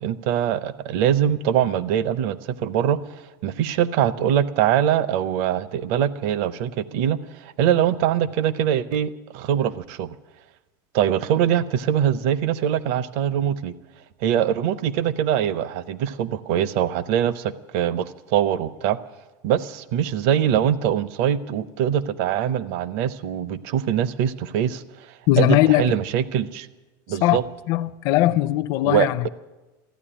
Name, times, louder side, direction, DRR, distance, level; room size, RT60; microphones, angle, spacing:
voice 1, 0.0-10.2 10.9-13.7 14.2-19.0 19.4-26.7 27.1-27.4 28.8-29.3, right 10 dB, 50° right, 0.6 m, -23 dB
voice 2, 25.3-26.0 27.2-27.4 27.7-29.2, left 15 dB, 40° left, 0.5 m, -19 dB
14.5 x 9.7 x 10.0 m
supercardioid pair, 175°, 10 cm